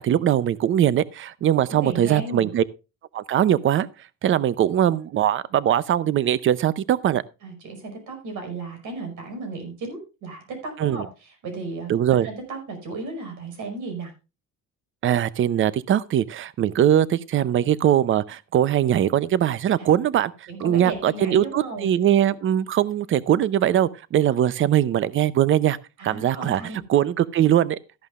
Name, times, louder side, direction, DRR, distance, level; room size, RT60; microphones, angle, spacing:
voice 1, 0.0-2.6 3.1-3.9 4.2-7.2 10.8-11.1 11.9-12.3 15.0-20.3 20.6-25.8 26.0-26.6 26.9-27.8, right 11 dB, 40° right, 0.6 m, -21 dB
voice 2, 1.7-2.5 7.4-11.9 12.2-14.1 19.8-19.9 20.5-21.9 24.4-24.5 26.0-26.8, right 3 dB, 70° right, 5.5 m, -34 dB
14.0 x 11.0 x 2.4 m
cardioid pair, 150°, 31 cm